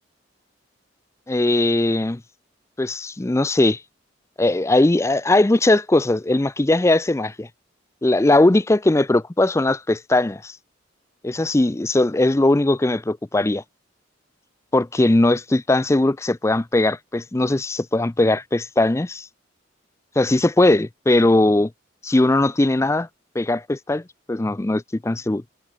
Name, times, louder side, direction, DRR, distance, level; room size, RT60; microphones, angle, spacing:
voice 1, 1.3-2.2 2.8-3.8 4.4-7.5 8.0-10.6 11.2-13.6 14.7-19.3 20.2-21.7 22.0-23.1 23.4-24.0 24.3-25.4, left 2 dB, 15° left, 0.4 m, -19 dB
head